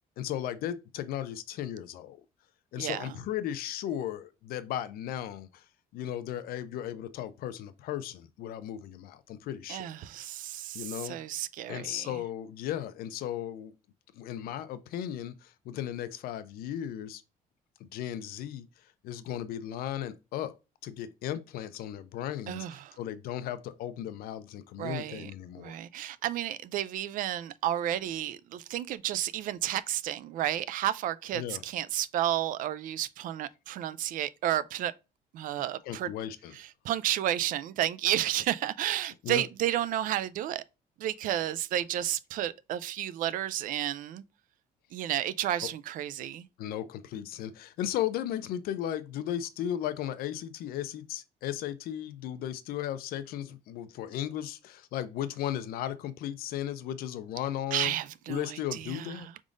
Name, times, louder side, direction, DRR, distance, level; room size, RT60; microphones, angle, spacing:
voice 1, 0.2-2.2 2.7-5.6 5.9-9.9 10.7-11.2 11.7-13.7 14.1-17.2 17.8-18.7 19.0-20.5 20.8-25.8 31.3-31.6 35.9-36.6 39.2-39.4 46.6-57.9 58.3-59.3, left 11 dB, 75° left, 0.6 m, -36 dB
voice 2, 2.8-3.2 9.7-12.2 22.5-23.0 24.8-25.3 25.6-34.9 35.3-36.1 36.5-40.6 41.0-44.2 44.9-46.5 57.7-59.3, right 12 dB, 60° right, 0.4 m, -32 dB
4.9 x 3.6 x 2.5 m
cardioid pair, 155°, 16 cm